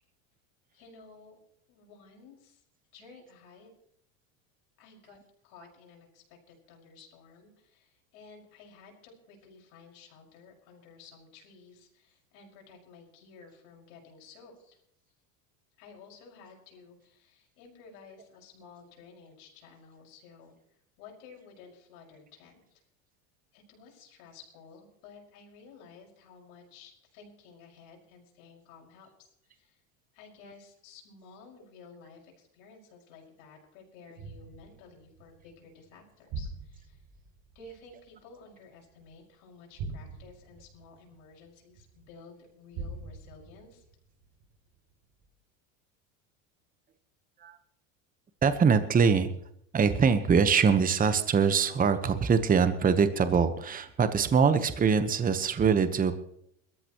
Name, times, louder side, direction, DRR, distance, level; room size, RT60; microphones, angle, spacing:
voice 1, 0.7-1.4 1.7-2.6 2.9-3.7 4.8-14.8 15.8-20.5 21.0-22.8 23.5-29.8 30.1-37.0 37.5-43.8, left 5 dB, 70° left, 0 dB, 5.7 m, -54 dB
sound 1, 34.2-39.2 39.7-42.1 42.7-44.8 45.2-45.3, right 3 dB, 55° right, 7.2 m, -44 dB
voice 2, 48.4-49.3 49.7-56.1, right 6 dB, 20° right, 11 dB, 1.1 m, -23 dB
22.0 x 14.0 x 3.1 m, 0.73 s
supercardioid pair, 105°, 41 cm